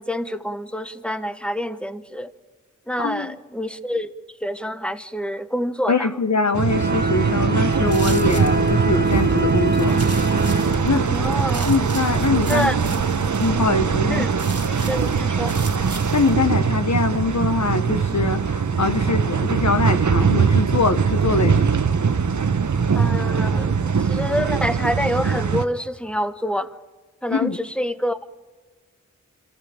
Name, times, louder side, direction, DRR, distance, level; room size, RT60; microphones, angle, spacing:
voice 1, 0.0-2.3 2.9-4.1 4.4-6.1 11.0-11.6 12.5-12.8 14.1-14.3 14.7-15.6 22.9-26.8 27.2-28.2, equal, 5° left, 11 dB, 1.1 m, -27 dB
voice 2, 3.0-3.4 5.9-10.0 10.8-11.1 11.6-13.0 13.4-14.3 16.1-21.7 27.3-27.6, left 3 dB, 60° left, 10 dB, 1.4 m, -23 dB
sound 1, 6.5-25.7, right 6 dB, 70° right, 1.0 m, -21 dB
sound 2, 6.7-11.5, right 2 dB, 30° right, 2.2 m, -24 dB
sound 3, 7.7-16.3, right 2 dB, 50° right, 3.2 m, -35 dB
27.0 x 14.0 x 8.7 m, 1.4 s
wide cardioid pair, 45°, 31 cm